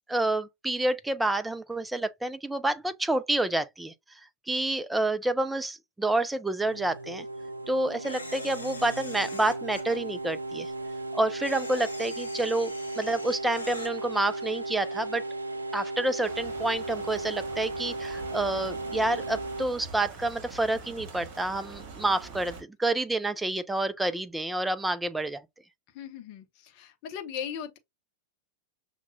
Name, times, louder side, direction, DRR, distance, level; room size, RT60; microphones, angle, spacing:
voice 1, 0.1-3.9 4.5-7.3 7.7-10.7 11.1-15.2 15.7-25.4, right 2 dB, 5° right, 0.4 m, -28 dB
sound 1, 6.6-19.7, right 2 dB, 85° right, 0.5 m, -36 dB
Camera, 8.0-10.0 11.4-13.9, left 3 dB, 80° left, 0.7 m, -43 dB
sound 2, 16.2-22.6, right 4 dB, 45° right, 1.3 m, -44 dB
voice 2, 25.9-27.8, left 8 dB, 45° left, 0.6 m, -38 dB
5.8 x 2.1 x 2.6 m
figure-of-eight pair, 90°, 0 cm